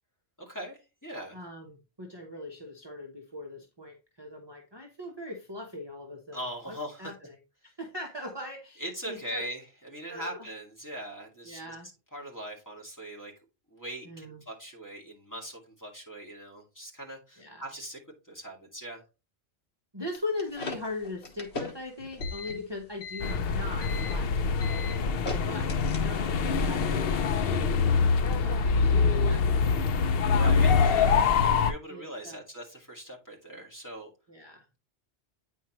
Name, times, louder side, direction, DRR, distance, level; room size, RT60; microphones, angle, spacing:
voice 1, 0.4-1.4 6.3-7.1 8.8-11.8 12.1-13.3 13.7-18.0 18.2-19.0 30.2-31.2 31.6-34.1, right 1 dB, 15° left, -2 dB, 2.1 m, -41 dB
voice 2, 1.3-6.4 6.7-7.1 7.6-9.4 10.1-10.5 11.5-11.9 14.0-14.4 17.4-17.6 19.9-24.3 24.9-25.2 25.5-27.8 28.4-29.7 31.9-32.4 34.3-34.8, left 2 dB, 25° right, 1 dB, 0.9 m, -40 dB
sound 1, 20.1-26.4, left 3 dB, 85° left, 1.5 m, -39 dB
sound 2, 23.2-31.7, left 5 dB, 65° left, 0.8 m, -24 dB
9.1 x 4.5 x 3.0 m, 0.30 s
omnidirectional pair, 1.1 m